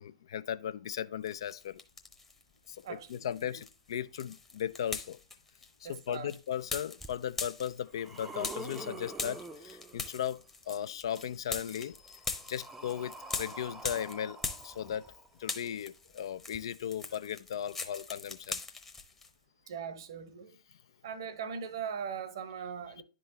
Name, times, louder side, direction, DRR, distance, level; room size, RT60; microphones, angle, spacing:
voice 1, 0.0-1.8 2.7-5.2 5.8-14.4 14.6-18.6, left 9 dB, 60° left, 0.3 m, -37 dB
sound 1, 1.3-2.4 2.8-15.1 15.4-19.3, left 3 dB, 10° left, 0.8 m, -41 dB
voice 2, 2.8-3.6 5.8-6.3 19.7-20.6 21.0-23.0, right 7 dB, 60° right, 0.8 m, -40 dB
sound 2, 7.0-7.1 7.7-10.4 11.6-15.5 16.5-16.6, right 2 dB, 10° right, 0.5 m, -46 dB
10.5 x 3.9 x 2.7 m
figure-of-eight pair, 110°, 3 cm